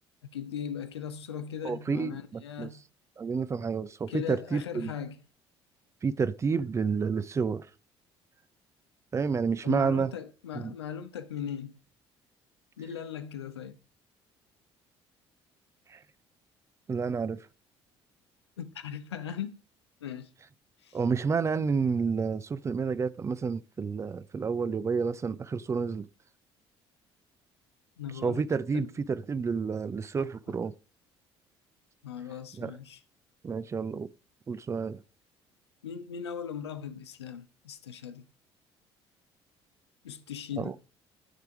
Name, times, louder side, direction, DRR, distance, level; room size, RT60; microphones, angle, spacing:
voice 1, 0.3-2.8 4.1-5.2 9.6-11.7 12.8-13.8 18.6-19.6 20.0-20.3 20.8-21.0 28.0-28.4 28.7-28.9 32.0-33.0 35.8-38.2 40.0-40.7, left 8 dB, 75° left, 0.6 m, -38 dB
voice 2, 1.6-2.7 3.2-5.0 6.0-7.7 9.1-10.1 10.5-10.7 15.9-16.0 16.9-17.5 20.9-26.1 28.2-30.7 32.5-32.7 33.4-34.1 34.5-35.0 40.6-40.8, right 5 dB, 20° right, 0.4 m, -30 dB
9.7 x 3.5 x 4.7 m
figure-of-eight pair, 50°, 14 cm